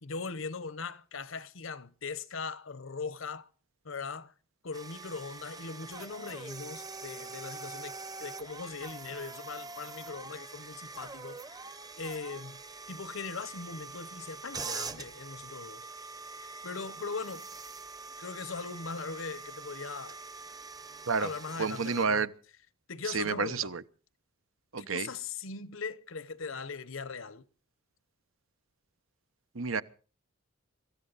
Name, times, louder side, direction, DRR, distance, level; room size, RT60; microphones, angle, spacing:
voice 1, 0.0-3.5 3.8-4.3 4.6-12.6 12.9-15.8 16.6-17.5 18.2-20.2 21.2-22.3 22.9-23.7 24.8-27.4, left 4 dB, 80° left, 1.0 m, -40 dB
sound 1, 4.7-22.1, right 4 dB, 20° right, 0.7 m, -44 dB
voice 2, 21.6-22.3 23.1-23.8 24.7-25.1 29.5-29.8, right 5 dB, 90° right, 1.0 m, -30 dB
24.5 x 14.5 x 4.1 m
head